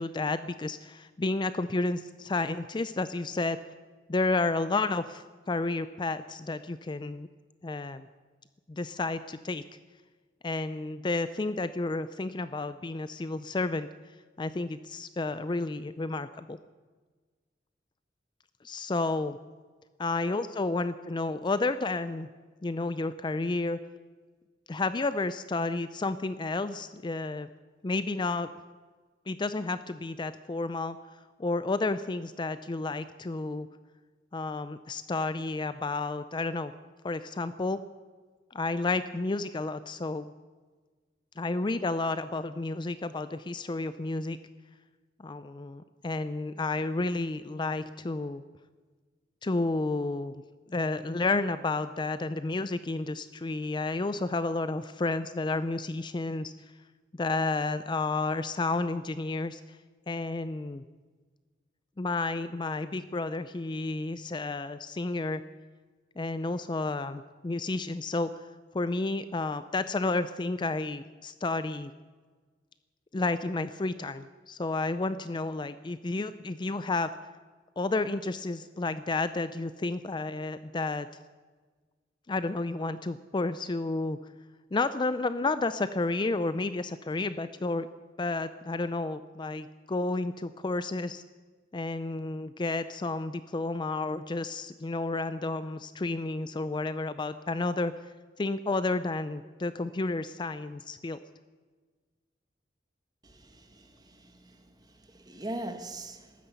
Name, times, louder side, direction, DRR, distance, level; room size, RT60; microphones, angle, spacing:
voice 1, 0.0-3.6 4.1-7.3 7.6-8.1 8.7-9.6 10.4-13.9 14.4-16.6 18.6-19.4 20.0-22.3 22.6-23.8 24.7-27.5 27.8-28.5 29.3-31.0 31.4-33.7 34.3-36.7 37.0-37.8 38.5-40.3 41.4-44.4 45.2-48.4 49.4-50.4 50.7-56.5 57.1-59.8 60.1-60.8 62.0-65.4 66.2-68.5 68.7-71.9 73.1-77.1 77.8-81.1 82.3-84.2 84.7-87.9 88.2-91.2 91.7-97.9 98.4-101.2, left 3 dB, 25° left, 0.4 m, -31 dB
voice 2, 103.2-106.3, right 1 dB, 20° right, 1.6 m, -42 dB
13.5 x 12.5 x 8.3 m
head